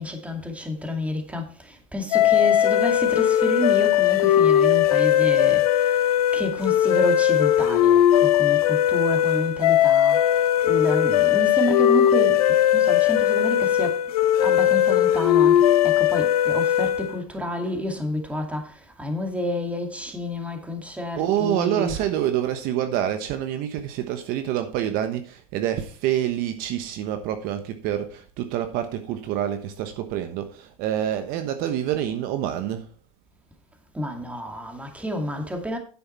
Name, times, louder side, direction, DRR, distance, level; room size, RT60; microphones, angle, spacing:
voice 1, 0.0-14.0 14.4-21.9 33.9-35.8, equal, 5° right, 2.3 m, -29 dB
sound 1, 2.1-17.2, left 11 dB, 85° left, 1.1 m, -19 dB
voice 2, 21.2-32.9, right 11 dB, 55° right, 1.2 m, -27 dB
9.9 x 7.8 x 4.4 m
supercardioid pair, 120°, 18 cm